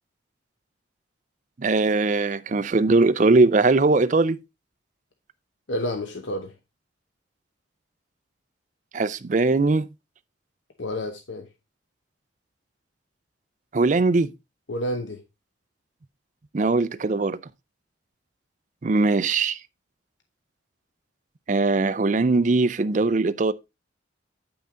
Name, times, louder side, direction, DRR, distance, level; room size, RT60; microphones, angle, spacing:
voice 1, 1.6-4.4 8.9-9.9 13.7-14.3 16.5-17.4 18.8-19.6 21.5-23.5, right 3 dB, 40° right, 0.4 m, -20 dB
voice 2, 5.7-6.5 10.8-11.5 14.7-15.2, left 1 dB, 70° left, 0.9 m, -29 dB
8.6 x 5.8 x 3.7 m
head